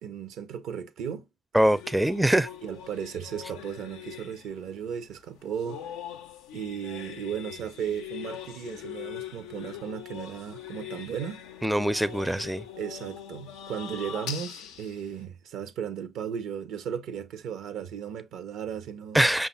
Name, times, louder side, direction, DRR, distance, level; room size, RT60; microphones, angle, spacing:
voice 1, 0.0-1.2 2.6-5.8 6.5-11.4 12.8-19.2, right 8 dB, 80° right, 0.5 m, -35 dB
voice 2, 1.5-2.5 11.6-12.6 19.1-19.5, right 1 dB, 5° right, 0.4 m, -23 dB
sound 1, 1.6-15.2, left 10 dB, 90° left, 0.4 m, -42 dB
5.3 x 2.3 x 4.0 m
hypercardioid pair, 50°, 0 cm